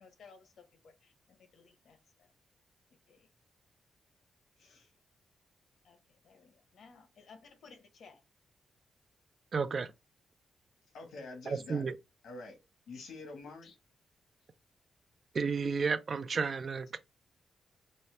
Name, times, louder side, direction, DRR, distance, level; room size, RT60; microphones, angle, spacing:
voice 1, 0.0-2.3 3.1-3.3 5.8-6.0 6.2-8.2 13.6-13.7, left 5 dB, 70° left, 0.9 m, -58 dB
voice 2, 4.6-4.9 10.9-12.0 12.2-12.6 12.9-13.7, left 3 dB, 85° left, 1.3 m, -46 dB
voice 3, 9.5-9.9 11.5-11.9 15.3-17.0, right 5 dB, 45° right, 0.4 m, -32 dB
5.5 x 2.1 x 3.2 m
cardioid pair, 100°, 0 cm